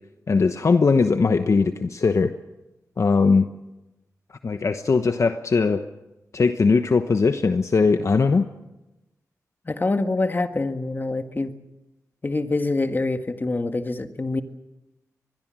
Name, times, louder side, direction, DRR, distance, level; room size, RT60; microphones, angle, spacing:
voice 1, 0.3-2.3 3.0-3.5 4.4-5.8 6.3-8.5, left 4 dB, 55° left, 8 dB, 1.0 m, -20 dB
voice 2, 9.7-11.5 12.2-14.4, left 2 dB, 35° left, 8 dB, 1.6 m, -25 dB
24.0 x 21.0 x 7.5 m, 1.0 s
wide cardioid pair, 80°, 6 cm